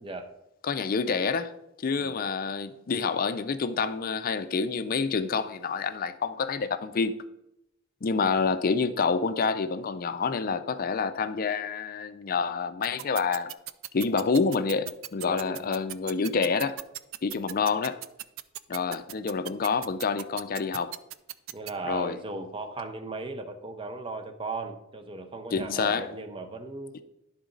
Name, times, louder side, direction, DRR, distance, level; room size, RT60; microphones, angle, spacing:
voice 1, 0.6-1.5 1.8-7.2 8.0-13.5 13.9-16.8 17.2-18.0 18.7-20.9 21.8-22.2 25.5-26.1, left 5 dB, 45° left, 0.4 m, -28 dB
voice 2, 8.0-8.4 15.2-15.7 21.5-27.0, right 3 dB, 25° right, 0.6 m, -37 dB
sound 1, 12.8-21.7, right 14 dB, 65° right, 0.3 m, -37 dB
11.5 x 4.0 x 3.8 m
head